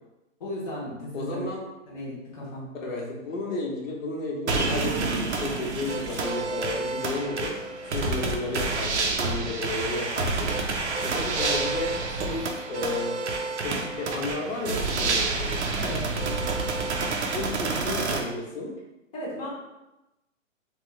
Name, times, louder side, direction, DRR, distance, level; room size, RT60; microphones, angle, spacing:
voice 1, 0.4-1.4 1.9-2.7 15.7-16.0 19.1-19.5, left 1 dB, 30° left, -7 dB, 0.8 m, -35 dB
voice 2, 1.1-1.6 2.8-7.5 7.9-10.5 11.0-13.2 13.6-15.7 17.3-18.7, left 2 dB, 75° left, -1 dB, 1.0 m, -32 dB
sound 1, 4.5-18.2, right 3 dB, 60° right, 0.6 m, -28 dB
3.0 x 2.3 x 3.0 m, 0.98 s
hypercardioid pair, 170°, 39 cm